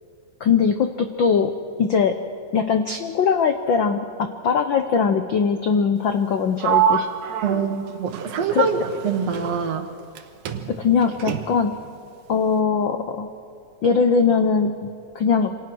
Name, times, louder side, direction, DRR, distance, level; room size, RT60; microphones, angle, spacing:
voice 1, 0.4-1.5 1.8-2.2 2.5-7.1 8.5-8.7 10.7-11.8 12.3-13.3 13.8-14.9 15.1-15.5, left 6 dB, 85° left, 7 dB, 1.0 m, -21 dB
Sliding door, 6.6-10.2 10.5-11.8, right 9 dB, 80° right, 2.6 m, -26 dB
voice 2, 7.4-8.8 9.0-9.9, right 6 dB, 60° right, 6 dB, 2.4 m, -24 dB
27.5 x 26.0 x 6.2 m, 2.3 s
omnidirectional pair, 3.5 m